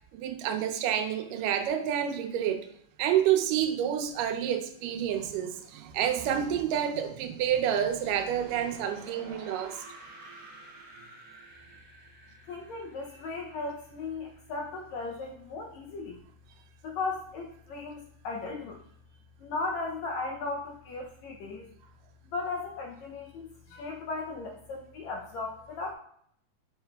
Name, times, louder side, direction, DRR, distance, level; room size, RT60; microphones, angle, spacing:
voice 1, 0.1-2.6 3.0-9.8, right 9 dB, 85° right, 6 dB, 2.3 m, -28 dB
sound 1, 7.7-14.6, right 3 dB, 60° right, 1.8 m, -50 dB
voice 2, 12.5-16.2 16.8-18.8 19.4-21.7 22.3-25.9, left 3 dB, 75° left, 1 dB, 1.7 m, -36 dB
7.7 x 5.6 x 2.3 m, 0.67 s
omnidirectional pair, 3.8 m